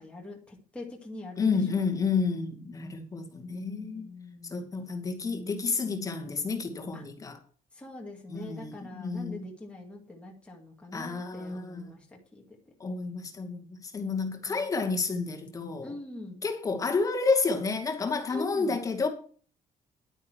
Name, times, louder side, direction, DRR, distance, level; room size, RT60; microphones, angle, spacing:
voice 1, 0.0-2.2 3.5-4.7 6.9-7.0 7.7-12.6 14.4-14.6 15.8-16.4 18.3-18.8, left 2 dB, 10° left, 2.2 m, -44 dB
voice 2, 1.4-4.1 4.4-7.4 8.3-9.4 10.9-12.0 12.8-15.9 16.4-19.1, left 4 dB, 25° left, 2.2 m, -30 dB
11.0 x 9.1 x 4.7 m
cardioid pair, 175°, 15 cm